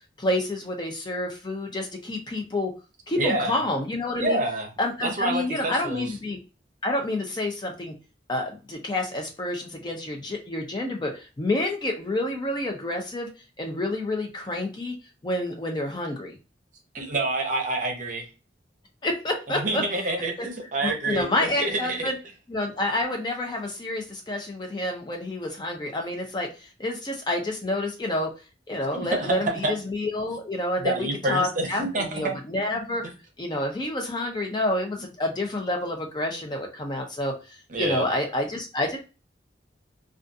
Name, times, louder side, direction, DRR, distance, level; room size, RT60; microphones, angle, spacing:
voice 1, 0.2-2.7 3.1-4.4 4.8-6.4 6.8-7.9 8.3-13.3 13.6-14.9 15.2-16.4 19.0-19.8 20.4-20.5 20.8-22.2 22.5-28.3 28.7-31.8 32.1-33.0 33.4-39.0, left 1 dB, 25° left, 2 dB, 0.4 m, -28 dB
voice 2, 3.2-3.6 4.2-4.7 5.0-6.1 16.9-18.2 19.5-22.1 28.9-29.7 30.8-32.4 37.7-38.1, right 2 dB, 45° right, 2 dB, 0.6 m, -27 dB
2.4 x 2.3 x 2.5 m, 0.31 s
head